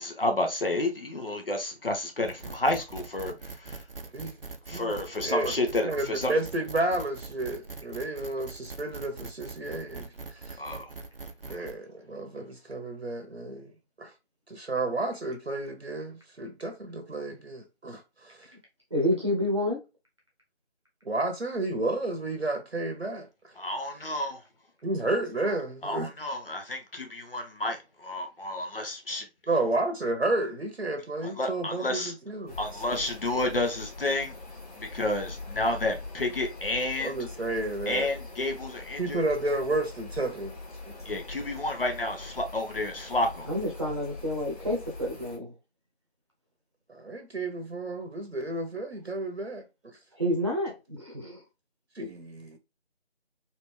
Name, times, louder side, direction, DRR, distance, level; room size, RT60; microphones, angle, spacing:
voice 1, 0.0-3.8 4.7-6.3 10.6-10.9 11.5-11.6 23.6-24.4 25.8-29.2 31.4-32.1 32.6-34.3 34.7-37.2 37.9-39.2 41.0-43.5, left 2 dB, 55° left, 1.1 m, -30 dB
sound 1, 2.2-11.7, right 3 dB, 55° right, 0.7 m, -42 dB
voice 2, 5.8-10.6 11.5-13.7 14.0-14.1 14.5-18.5 21.0-23.5 24.8-26.1 29.5-32.8 37.0-38.1 39.0-40.6 40.9-41.0 46.9-49.6 51.9-52.6, right 2 dB, 80° right, 1.1 m, -31 dB
voice 3, 18.9-19.8 43.5-45.5 50.2-51.4, left 1 dB, 25° right, 1.0 m, -29 dB
sound 2, 32.5-45.4, left 3 dB, 35° left, 1.7 m, -43 dB
4.2 x 2.8 x 3.4 m
figure-of-eight pair, 165°, 33 cm